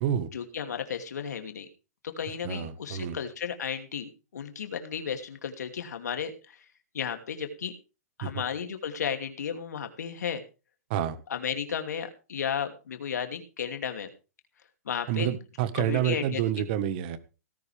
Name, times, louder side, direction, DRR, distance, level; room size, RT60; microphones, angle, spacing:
voice 1, 0.3-1.7 2.0-6.6 6.9-7.7 8.2-10.4 11.3-14.1 14.8-15.3 15.7-16.7, left 7 dB, 80° left, 6 dB, 2.8 m, -34 dB
voice 2, 2.4-3.2 8.2-8.3 10.9-11.2 15.1-17.2, right 10 dB, 35° right, 13 dB, 1.5 m, -28 dB
18.0 x 10.5 x 3.5 m, 0.32 s
hypercardioid pair, 165°, 9 cm